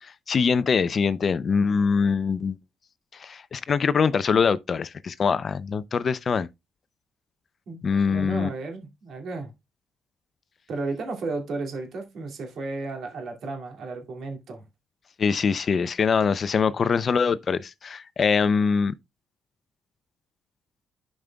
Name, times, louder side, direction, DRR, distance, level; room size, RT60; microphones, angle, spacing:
voice 1, 0.0-2.6 3.1-6.5 7.8-8.5 15.2-18.9, left 5 dB, 45° left, 0.5 m, -23 dB
voice 2, 8.1-9.5 10.7-14.6, right 3 dB, 65° right, 2.4 m, -33 dB
12.0 x 5.2 x 2.3 m
cardioid pair, 90°, 0 cm